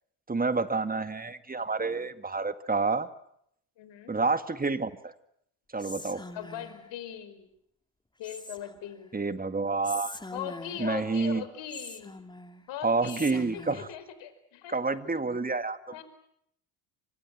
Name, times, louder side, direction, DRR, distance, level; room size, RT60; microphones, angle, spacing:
voice 1, 0.3-3.1 4.1-5.1 5.7-6.2 9.1-10.2 10.8-11.4 12.8-13.9 14.7-15.8, right 3 dB, 15° right, 11 dB, 2.0 m, -29 dB
voice 2, 3.8-4.2 6.3-7.5 8.2-9.1 10.3-12.2 12.7-15.0 15.9-16.0, left 10 dB, 60° left, 11 dB, 5.0 m, -40 dB
Whispering, 5.8-6.9 8.2-8.9 9.8-11.0 11.7-12.6 13.0-13.9, left 2 dB, 10° left, 2.6 m, -43 dB
29.5 x 25.0 x 7.5 m, 0.72 s
hypercardioid pair, 70°, 48 cm